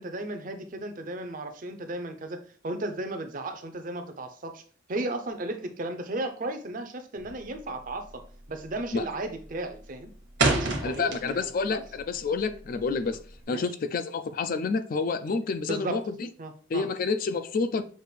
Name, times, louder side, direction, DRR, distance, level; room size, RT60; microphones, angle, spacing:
voice 1, 0.0-4.6 4.9-8.2 8.5-10.1 10.4-11.8 13.5-13.6 15.6-16.0 16.4-16.9, right 2 dB, 45° right, 0.6 m, -35 dB
sound 1, 7.2-7.6 7.9-8.2 8.5-9.0 9.3-11.7 12.0-13.4, right 3 dB, 65° right, 1.0 m, -28 dB
voice 2, 10.8-13.2 13.5-16.3 16.7-17.8, left 4 dB, 45° left, 0.3 m, -29 dB
6.5 x 2.5 x 3.2 m
head